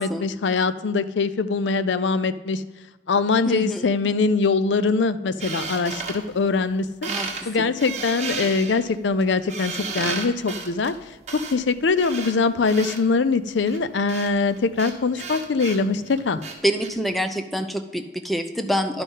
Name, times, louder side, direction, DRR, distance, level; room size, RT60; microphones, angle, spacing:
voice 1, 0.0-2.6 3.1-7.1 7.5-16.4, left 4 dB, 75° left, 14 dB, 0.5 m, -23 dB
voice 2, 3.4-3.9 7.1-7.3 7.6-7.7 16.6-19.0, equal, ahead, 7 dB, 0.6 m, -26 dB
sound 1, 5.4-6.8 7.0-7.4 7.8-13.0 13.7-16.9, right 4 dB, 40° right, 1.4 m, -33 dB
11.0 x 5.5 x 5.4 m, 1.2 s
head